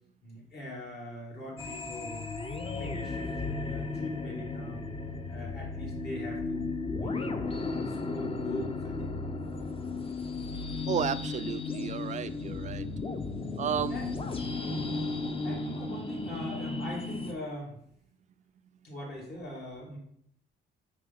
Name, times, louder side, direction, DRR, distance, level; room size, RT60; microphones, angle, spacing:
voice 1, 0.2-2.3 2.6-4.9 5.3-9.0 13.9-14.0 15.4-17.8 18.8-20.0, left 1 dB, 55° left, -4 dB, 2.7 m, -41 dB
sound 1, 1.6-17.3, left 3 dB, 30° left, 0.7 m, -35 dB
voice 2, 10.9-12.9 13.6-14.0 14.7-14.9, right 8 dB, 35° right, 14 dB, 0.4 m, -33 dB
4.8 x 4.5 x 5.5 m, 0.70 s
cardioid pair, 90°, 20 cm